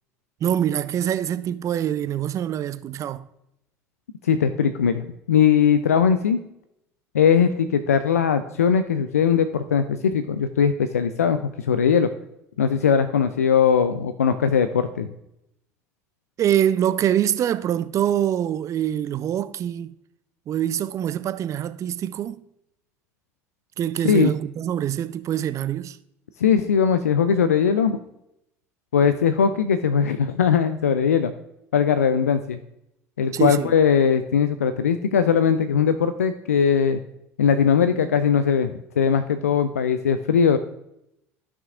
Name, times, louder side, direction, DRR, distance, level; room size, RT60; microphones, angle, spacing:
voice 1, 0.4-3.2 16.4-19.9 20.5-22.5 23.8-26.0 33.3-33.7, right 10 dB, 40° right, 0.5 m, -24 dB
voice 2, 4.2-6.4 7.1-12.1 12.6-15.1 24.0-24.3 26.4-28.0 28.9-31.3 31.7-32.6 33.2-37.0 37.4-40.6, left 7 dB, 85° left, 0.4 m, -20 dB
13.5 x 6.1 x 2.4 m
figure-of-eight pair, 65°, 8 cm